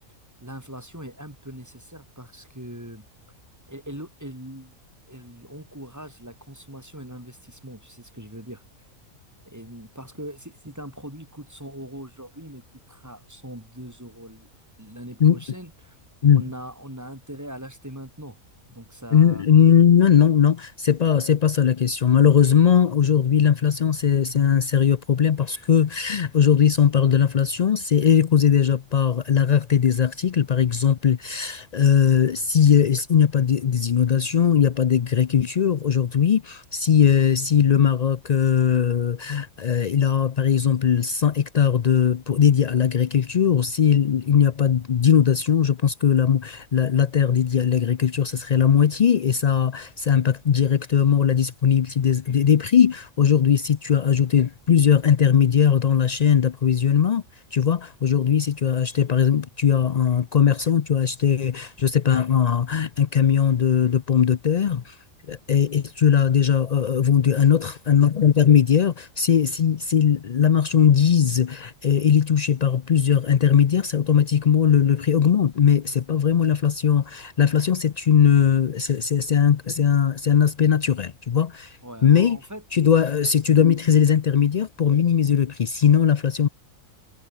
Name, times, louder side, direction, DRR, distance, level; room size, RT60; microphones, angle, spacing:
voice 1, 0.4-3.1 3.7-4.8 5.1-8.6 9.4-14.5 14.8-16.0 16.3-18.4 18.7-19.5 81.8-82.6, right 1 dB, 10° right, 4.2 m, -40 dB
voice 2, 19.1-57.2 57.5-65.0 65.3-82.4 82.7-86.5, left 8 dB, 70° left, 0.3 m, -19 dB
omnidirectional pair, 1.5 m